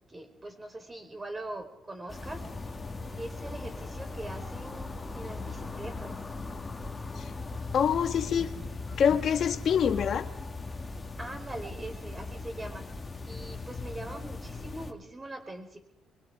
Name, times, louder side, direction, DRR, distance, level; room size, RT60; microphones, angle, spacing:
voice 1, 0.1-2.4 3.1-6.3 11.2-12.9 13.2-15.8, right 1 dB, 20° right, 6 dB, 4.5 m, -42 dB
sound 1, 2.1-14.9, left 3 dB, 25° left, 2.1 m, -39 dB
voice 2, 7.7-8.5 9.0-10.3, left 8 dB, 60° left, 7 dB, 1.6 m, -25 dB
24.5 x 22.5 x 4.8 m, 0.77 s
cardioid pair, 90°, 0 cm